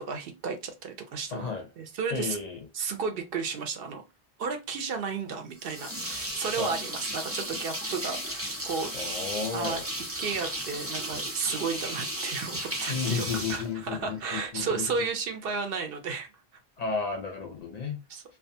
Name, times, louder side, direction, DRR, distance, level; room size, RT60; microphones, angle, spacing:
voice 1, 0.0-2.4 2.7-4.0 4.4-8.9 9.5-9.8 10.2-16.3 18.1-18.2, right 5 dB, 70° right, 0.8 m, -33 dB
voice 2, 1.3-1.7 2.1-2.6 6.6-6.7 8.9-9.8 12.9-14.9 16.8-18.0, left 5 dB, 55° left, 0.5 m, -33 dB
sound 1, 5.6-14.4, right 1 dB, 20° right, 0.5 m, -35 dB
2.4 x 2.3 x 2.6 m
omnidirectional pair, 1.0 m